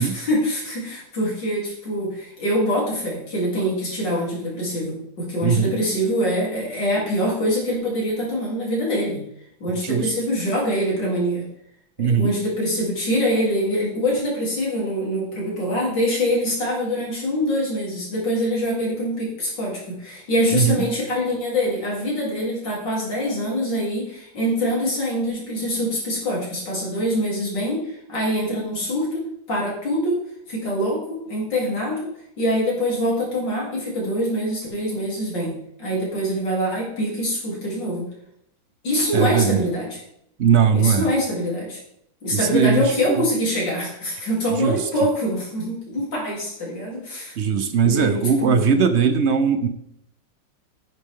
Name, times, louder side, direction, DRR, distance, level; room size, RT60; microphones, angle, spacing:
voice 1, 0.0-9.2 9.6-11.5 12.0-30.2 30.5-32.1 32.4-38.1 38.8-40.0 40.7-41.8 42.2-47.4 47.8-48.7, equal, 75° left, -4 dB, 4.1 m, -24 dB
voice 2, 5.4-5.8 9.8-10.1 12.0-12.3 20.5-20.8 39.1-39.6 40.4-41.1 42.3-43.2 44.6-44.8 47.4-49.7, right 6 dB, 65° right, 10 dB, 0.7 m, -19 dB
9.7 x 8.2 x 3.7 m, 0.74 s
omnidirectional pair, 1.9 m